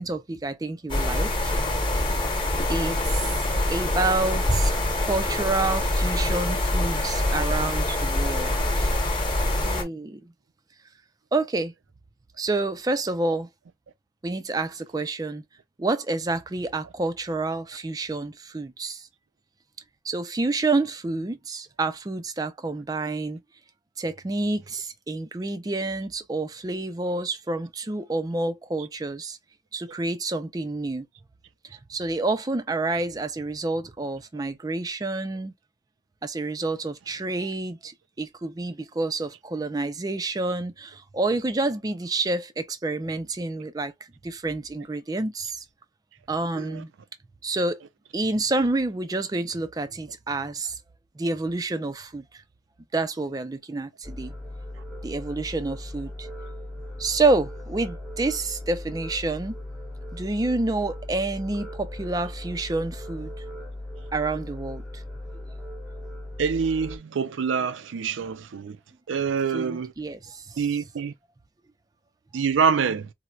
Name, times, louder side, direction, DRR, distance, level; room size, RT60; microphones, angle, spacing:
voice 1, 0.0-1.6 2.7-3.4 3.7-4.7 5.0-9.0 9.6-10.3 11.3-11.7 12.4-13.5 14.2-15.4 15.8-19.1 20.0-23.4 24.0-29.4 29.7-31.1 31.6-35.5 36.2-45.6 46.3-46.9 47.4-47.8 48.1-50.8 51.2-52.4 52.9-54.3 55.0-56.3 57.0-59.6 60.1-63.4 64.1-65.0 69.5-70.6, right 2 dB, 20° right, 0.3 m, -28 dB
sound 1, 0.9-9.8, left 1 dB, 25° left, 1.0 m, -25 dB
sound 2, 54.0-67.0, left 1 dB, ahead, 0.7 m, -38 dB
voice 2, 66.4-68.8 69.1-69.9 70.6-71.1 72.3-73.1, right 6 dB, 85° right, 0.4 m, -26 dB
4.2 x 2.0 x 2.3 m
head